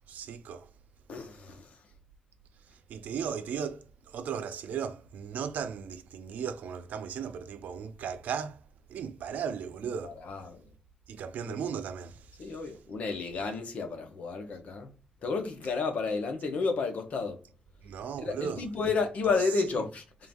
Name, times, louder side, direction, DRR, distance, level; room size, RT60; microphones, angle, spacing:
voice 1, 0.1-0.7 2.9-8.6 8.9-10.2 11.1-12.5 17.8-18.7 19.8-19.9, right 7 dB, 90° right, 0.5 m, -36 dB
voice 2, 1.1-1.7 10.0-10.6 11.5-11.6 12.4-14.9 15.2-17.4 18.2-20.0, left 4 dB, 65° left, 1.0 m, -31 dB
3.8 x 2.6 x 3.6 m
cardioid pair, 120°, 3 cm